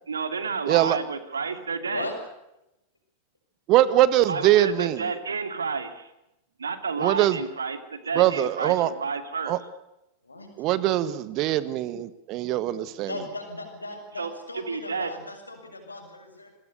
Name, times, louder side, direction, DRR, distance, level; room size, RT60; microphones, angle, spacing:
voice 1, 0.1-2.1 4.3-6.1 6.6-9.6 14.2-15.1, right 5 dB, 75° right, 10 dB, 2.7 m, -31 dB
voice 2, 0.7-1.0 3.7-5.0 7.0-7.4 8.2-8.9 9.5-9.6 10.6-13.1, right 14 dB, 40° right, 16 dB, 1.7 m, -22 dB
voice 3, 10.2-10.7 13.1-16.6, left 2 dB, 80° left, 4 dB, 7.1 m, -37 dB
28.0 x 22.5 x 6.9 m, 0.90 s
figure-of-eight pair, 90°, 0 cm